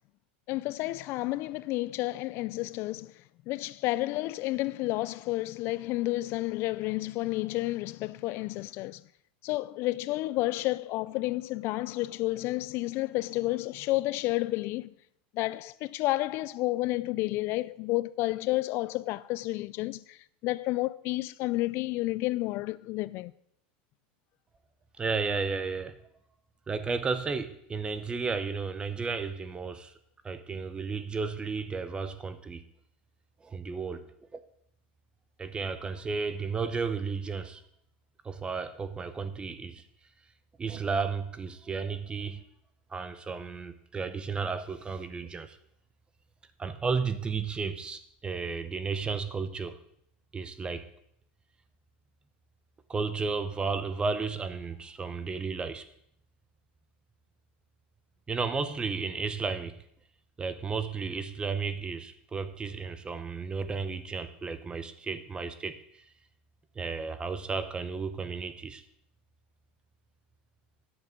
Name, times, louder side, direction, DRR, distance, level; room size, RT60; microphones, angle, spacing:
voice 1, 0.5-9.0 9.4-14.9 15.3-23.3, left 18 dB, 45° left, 0.3 m, -31 dB
voice 2, 25.0-25.9 26.7-29.9 30.2-32.6 33.4-34.0 34.3-34.4 35.4-37.6 38.2-39.8 40.6-42.4 42.9-45.6 46.6-49.8 50.3-50.9 52.9-55.8 58.3-59.8 60.4-66.0 66.8-68.8, right 4 dB, 15° right, 0.7 m, -33 dB
9.5 x 7.2 x 6.2 m
supercardioid pair, 125°, 6 cm